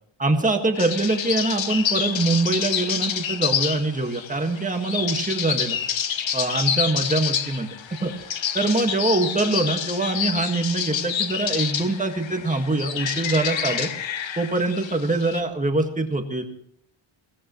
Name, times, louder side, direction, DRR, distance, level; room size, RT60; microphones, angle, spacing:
voice 1, 0.2-5.8 6.3-7.7 8.0-8.1 8.5-13.9 14.4-16.4, right 2 dB, 15° right, 4 dB, 1.7 m, -24 dB
sound 1, 0.7-15.4, left 8 dB, 65° left, 1.2 m, -28 dB
22.5 x 17.5 x 3.1 m, 0.71 s
wide cardioid pair, 170°, 49 cm